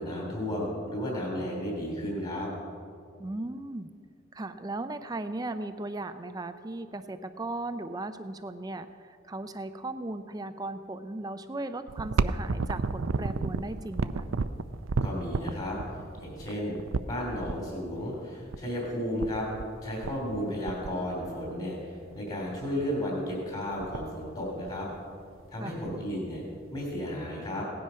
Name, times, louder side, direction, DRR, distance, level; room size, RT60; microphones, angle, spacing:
voice 1, 0.0-2.5 15.0-15.8 16.2-16.8 17.0-19.5 19.8-24.9 25.5-26.4 26.7-27.7, equal, 35° left, -3 dB, 2.8 m, -33 dB
voice 2, 3.2-3.9 4.3-14.3 25.6-25.8, right 2 dB, 20° right, 9 dB, 0.4 m, -37 dB
sound 1, 11.9-17.5 18.5-18.6 18.8-18.9 19.2-19.7 20.0-20.4 20.7-21.6 22.1-22.2 22.6-22.9 23.3-23.4 23.6-24.2 24.7-25.5 25.9-26.0 26.8-26.9, right 4 dB, 75° right, 0.5 m, -31 dB
17.0 x 10.5 x 5.6 m, 2.2 s
head